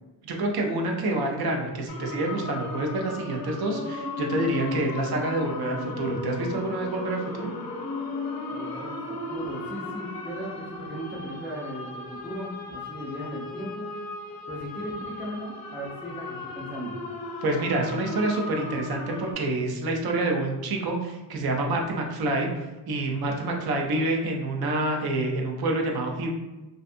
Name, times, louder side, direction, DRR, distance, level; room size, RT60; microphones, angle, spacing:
voice 1, 0.2-7.5 17.4-22.5 22.9-26.3, right 2 dB, 55° right, 1 dB, 0.5 m, -27 dB
sound 1, 1.9-19.3, left 2 dB, 50° left, 0.5 m, -36 dB
voice 2, 8.5-13.9 14.5-17.0, right 1 dB, 5° right, -5 dB, 0.3 m, -37 dB
2.5 x 2.2 x 2.5 m, 1.1 s
cardioid pair, 145°, 45 cm